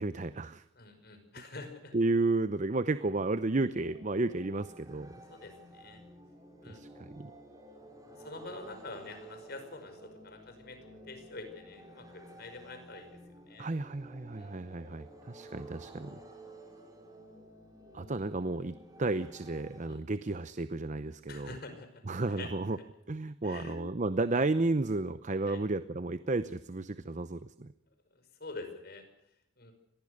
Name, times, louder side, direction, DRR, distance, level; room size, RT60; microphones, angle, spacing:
voice 1, 0.0-0.6 1.9-5.1 6.7-7.3 13.6-16.2 17.9-21.5 22.1-22.8 23.1-27.7, right 2 dB, 40° right, 13 dB, 0.8 m, -32 dB
voice 2, 0.7-1.9 5.3-6.0 6.6-6.8 8.1-10.8 11.0-13.7 14.3-14.6 19.9-20.0 21.3-22.0 22.3-22.5 23.4-23.8 25.5-25.6 28.1-29.1 29.6-29.7, left 3 dB, 60° left, 7 dB, 5.4 m, -46 dB
sound 1, 3.8-19.9, right 1 dB, 20° right, 5.7 m, -52 dB
25.0 x 20.0 x 6.6 m, 0.77 s
head